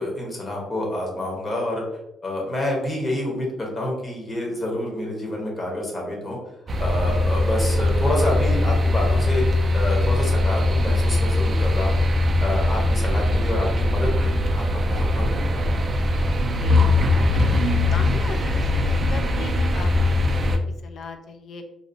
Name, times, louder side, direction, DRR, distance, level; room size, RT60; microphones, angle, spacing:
voice 1, 0.0-1.8 2.2-6.4 6.8-9.4 9.7-15.7, left 1 dB, 30° left, -1 dB, 1.0 m, -28 dB
sound 1, 6.7-20.6, left 1 dB, 45° right, 0.3 m, -21 dB
voice 2, 17.1-19.9 20.4-21.6, left 5 dB, 60° left, 6 dB, 0.3 m, -37 dB
2.8 x 2.0 x 2.6 m, 0.87 s
cardioid pair, 90°, 0 cm